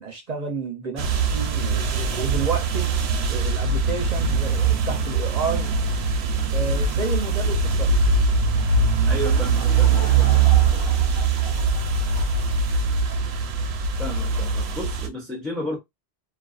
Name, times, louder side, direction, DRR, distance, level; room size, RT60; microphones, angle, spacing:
voice 1, 0.0-2.9 3.3-5.8 6.5-7.9, right 4 dB, 45° right, 0.7 m, -31 dB
sound 1, 1.0-15.1, right 4 dB, 80° right, 0.8 m, -22 dB
voice 2, 9.1-10.4 14.0-15.8, left 1 dB, ahead, 0.5 m, -32 dB
Laughter / Crowd, 9.2-13.4, left 5 dB, 80° left, 0.9 m, -39 dB
2.5 x 2.3 x 2.3 m
omnidirectional pair, 1.1 m